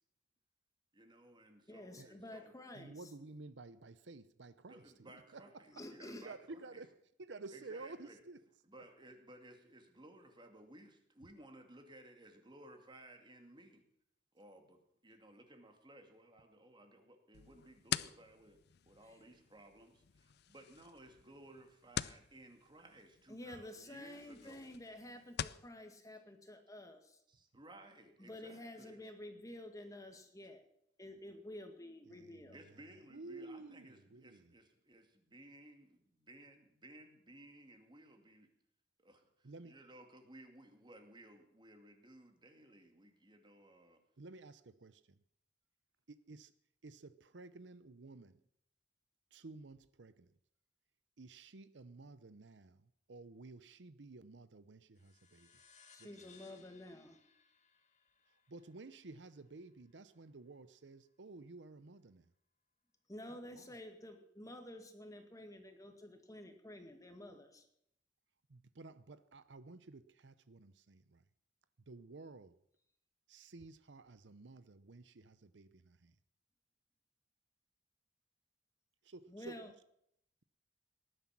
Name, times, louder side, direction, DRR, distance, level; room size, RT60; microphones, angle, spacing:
voice 1, 0.9-2.5 4.7-6.8 7.5-8.2 8.7-13.8 14.3-18.6 18.9-24.7 27.3-29.0 32.5-38.5 39.0-44.0, right 1 dB, 25° right, 2.5 m, -58 dB
voice 2, 1.7-3.0 5.7-6.3 23.3-27.2 28.2-30.6 31.0-32.6 55.9-57.2 63.1-67.6 79.3-79.7, left 1 dB, 20° left, 1.9 m, -50 dB
voice 3, 2.7-8.4 32.1-34.5 39.4-39.8 44.2-45.2 46.1-46.5 46.8-48.4 49.3-50.3 51.2-55.6 56.0-56.3 58.5-62.3 63.3-63.8 68.5-71.2 71.9-72.6 73.3-76.1 79.0-79.8, right 3 dB, 80° right, 0.8 m, -53 dB
sound 1, 17.3-25.7, left 9 dB, 65° left, 0.5 m, -46 dB
sound 2, 55.0-59.9, left 5 dB, 40° left, 2.0 m, -66 dB
19.0 x 11.0 x 6.0 m
head